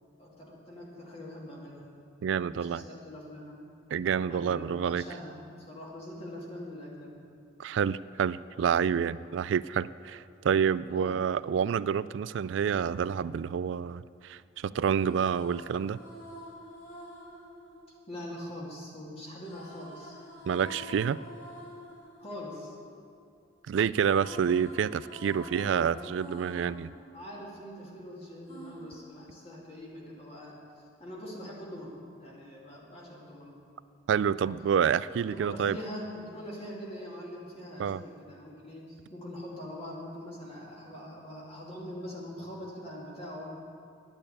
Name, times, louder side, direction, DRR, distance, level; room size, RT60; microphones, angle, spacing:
voice 1, 0.2-1.9 2.5-3.6 4.3-7.2 10.9-11.2 18.1-20.2 22.2-22.7 25.4-25.9 27.1-30.6 31.0-33.5 35.2-43.6, equal, 30° left, -4 dB, 2.5 m, -43 dB
voice 2, 2.2-2.8 3.9-5.0 7.6-16.0 20.5-21.2 23.7-26.9 34.1-35.8 37.8-38.0, right 7 dB, 70° right, 18 dB, 0.3 m, -28 dB
sound 1, 14.9-18.8 19.4-23.5 23.7-28.0 28.5-29.9, equal, 50° left, 4.0 m, -48 dB
11.0 x 8.8 x 8.4 m, 2.4 s
head